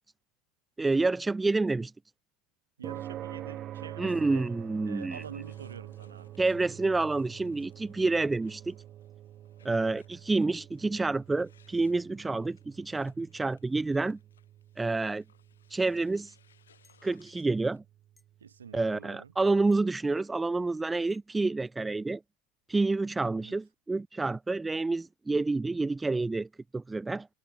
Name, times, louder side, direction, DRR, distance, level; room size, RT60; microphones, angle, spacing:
voice 1, 0.8-1.9 4.0-5.2 6.4-8.7 9.6-14.2 14.8-15.2 15.7-16.3 17.0-17.8 18.7-22.2 22.7-27.3, right 3 dB, 10° right, 0.3 m, -28 dB
sound 1, 2.8-19.3, right 12 dB, 40° right, 1.0 m, -47 dB
voice 2, 2.8-4.5 4.8-6.3 9.6-10.0 18.4-19.3 23.2-23.5, right 7 dB, 75° right, 1.9 m, -47 dB
sound 2, 4.1-17.8, left 8 dB, 75° left, 6.0 m, -67 dB
sound 3, 16.8-17.0 18.2-18.3 19.7-19.9 21.1-21.2, left 3 dB, 10° left, 6.5 m, -66 dB
figure-of-eight pair, 80°, 0 cm